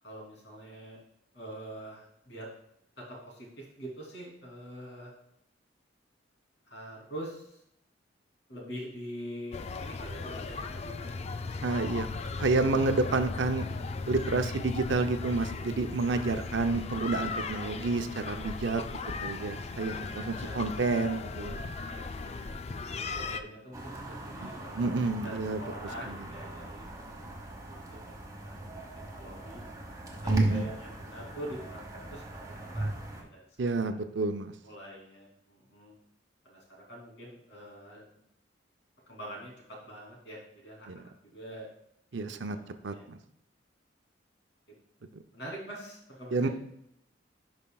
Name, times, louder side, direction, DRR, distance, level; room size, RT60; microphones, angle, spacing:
voice 1, 0.0-1.0 1.3-2.5 3.0-5.1 6.7-7.6 8.5-11.3 12.7-13.1 16.5-16.9 18.9-19.4 20.4-20.5 20.9-21.2 21.9-22.0 22.7-24.8 25.1-28.7 29.1-29.6 30.2-33.4 33.7-34.0 34.6-35.9 36.4-38.0 39.1-41.7 42.3-43.1 45.3-46.5, equal, 70° left, -3 dB, 2.9 m, -45 dB
sound 1, 9.5-23.4, left 4 dB, 35° left, 0.4 m, -37 dB
voice 2, 11.6-12.1 12.4-13.7 14.1-18.8 19.2-21.7 24.4-24.5 24.8-25.6 26.1-26.2 30.3-30.7 33.6-34.5 40.9-41.0 42.1-42.6 42.8-43.2 46.3-46.5, right 3 dB, 75° right, 8 dB, 0.6 m, -29 dB
Calle de noche en Santiago de Chile, 23.7-33.2, right 1 dB, 20° right, 1.2 m, -37 dB
11.0 x 5.2 x 2.3 m, 0.77 s
head